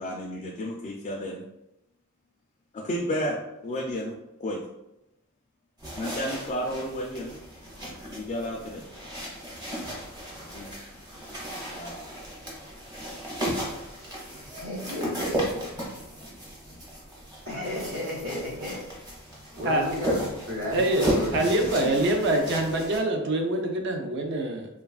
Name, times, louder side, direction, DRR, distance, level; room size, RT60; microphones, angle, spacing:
voice 1, 0.0-1.4 2.7-4.6 6.0-7.4 8.1-8.9 10.4-10.8 11.7-12.1 16.7-16.8, equal, 30° left, -1 dB, 0.3 m, -32 dB
sound 1, 5.8-23.0, equal, 20° right, 0.7 m, -35 dB
voice 2, 14.4-15.6 15.9-16.0 17.4-18.8 19.5-21.3 21.7-21.9, left 1 dB, 75° right, -9 dB, 1.1 m, -33 dB
voice 3, 20.7-21.1 21.3-24.7, right 1 dB, 50° right, 4 dB, 0.4 m, -25 dB
3.1 x 2.3 x 2.3 m, 0.89 s
head